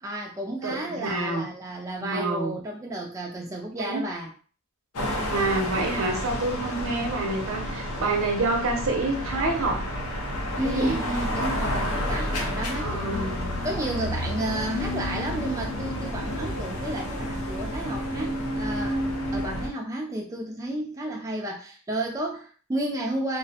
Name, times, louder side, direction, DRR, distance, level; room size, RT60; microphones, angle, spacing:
voice 1, 0.0-4.3 10.6-19.1 19.3-23.4, right 1 dB, 15° right, -1 dB, 0.3 m, -32 dB
voice 2, 0.6-1.5 2.0-2.6 3.7-4.0 5.3-9.8 10.6-11.0 12.8-13.5, right 2 dB, 65° right, 2 dB, 0.6 m, -27 dB
sound 1, 4.9-19.7, left 1 dB, 85° left, 0.6 m, -30 dB
2.3 x 2.0 x 2.7 m, 0.41 s
head